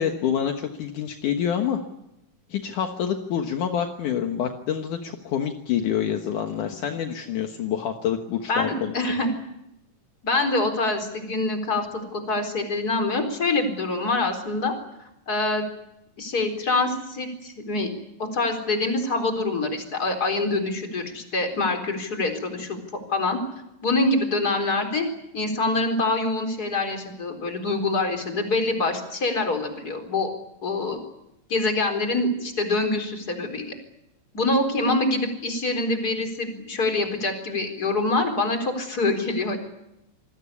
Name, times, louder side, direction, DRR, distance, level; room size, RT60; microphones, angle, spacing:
voice 1, 0.0-1.8 2.5-9.2, left 9 dB, 70° left, 4 dB, 2.8 m, -27 dB
voice 2, 8.5-9.3 10.2-14.7 15.3-15.7 16.2-17.9 18.3-22.8 23.1-23.4 23.8-25.1 25.3-30.3 30.6-31.0 31.5-33.7 34.3-39.6, left 2 dB, 25° left, 5 dB, 4.4 m, -25 dB
28.0 x 20.5 x 8.6 m, 0.86 s
omnidirectional pair, 3.8 m